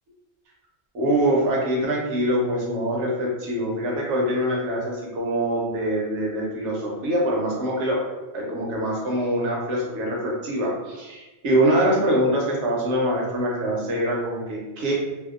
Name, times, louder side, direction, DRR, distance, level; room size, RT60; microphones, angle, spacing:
voice 1, 0.9-8.0 8.3-14.9, right 1 dB, 80° right, -3 dB, 1.0 m, -24 dB
2.6 x 2.0 x 2.4 m, 1.1 s
omnidirectional pair, 1.2 m